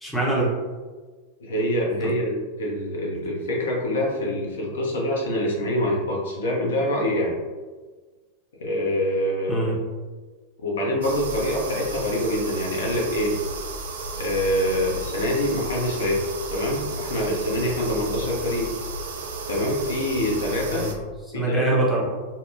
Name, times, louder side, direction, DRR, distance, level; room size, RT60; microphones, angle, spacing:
voice 1, 0.0-0.5 1.9-2.0 9.5-9.8 20.7-20.9 21.3-22.1, right 2 dB, 5° left, -5 dB, 0.6 m, -23 dB
voice 2, 1.4-7.3 8.6-9.8 10.6-13.3 14.1-16.2 16.5-18.7 19.5-20.9 21.3-21.6, left 1 dB, 65° left, -3 dB, 0.5 m, -25 dB
sound 1, 11.0-20.9, right 2 dB, 60° right, 0.3 m, -33 dB
2.8 x 2.0 x 2.4 m, 1.4 s
figure-of-eight pair, 90°, 0 cm